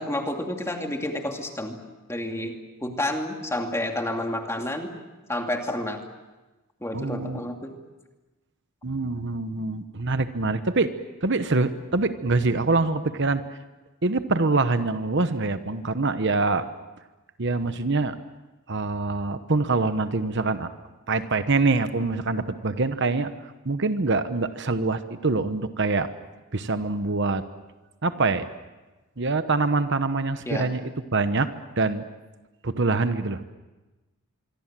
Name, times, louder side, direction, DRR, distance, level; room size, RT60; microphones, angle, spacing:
voice 1, 0.0-1.8 2.1-2.5 2.8-4.9 5.3-6.0 6.8-7.7 30.5-30.7, left 1 dB, 10° left, 3 dB, 2.5 m, -29 dB
voice 2, 6.9-7.4 8.8-10.9 11.2-13.4 14.0-16.7 17.4-18.2 18.7-20.7 21.1-23.3 23.6-26.1 26.5-27.4 28.0-28.5 29.2-31.5 31.8-32.0 32.6-33.4, right 3 dB, 55° right, 10 dB, 1.1 m, -24 dB
25.5 x 24.0 x 7.6 m, 1.1 s
head